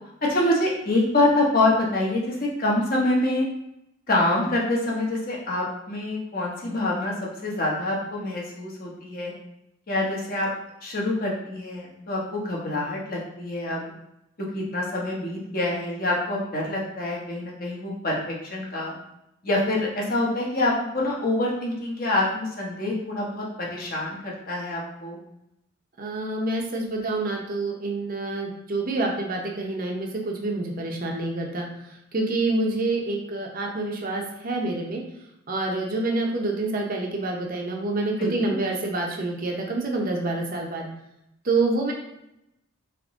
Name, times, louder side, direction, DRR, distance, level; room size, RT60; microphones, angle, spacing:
voice 1, 0.3-3.5 4.1-9.3 9.9-10.5 10.8-13.9 14.5-18.9 19.4-25.2 38.2-38.6, left 2 dB, 45° left, -3 dB, 1.0 m, -26 dB
voice 2, 26.0-31.7 32.1-35.0 35.5-40.9 41.4-41.9, right 2 dB, 45° right, 1 dB, 0.7 m, -27 dB
3.6 x 2.9 x 3.6 m, 0.84 s
head